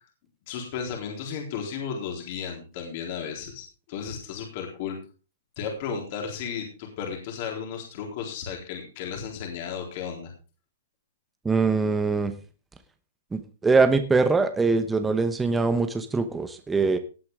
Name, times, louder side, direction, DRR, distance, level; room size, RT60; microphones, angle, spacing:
voice 1, 0.5-5.0 5.6-10.3, left 7 dB, 45° left, 1 dB, 3.9 m, -34 dB
voice 2, 11.4-12.3 13.3-17.0, right 4 dB, 10° right, 8 dB, 0.9 m, -23 dB
17.5 x 8.5 x 3.6 m, 0.34 s
hypercardioid pair, 150°, 0 cm